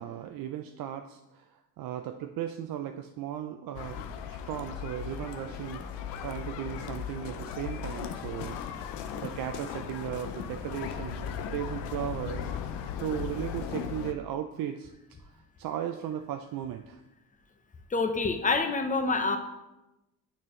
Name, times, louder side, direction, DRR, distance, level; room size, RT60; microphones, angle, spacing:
voice 1, 0.0-8.6 9.1-12.5 13.0-14.9 15.2-17.0, right 10 dB, 55° right, 6 dB, 0.5 m, -36 dB
sound 1, 3.7-14.1, left 8 dB, 75° left, 0.7 m, -37 dB
voice 2, 17.9-19.4, left 3 dB, 20° left, 6 dB, 0.7 m, -27 dB
8.6 x 4.5 x 3.1 m, 0.97 s
cardioid pair, 90°, 42 cm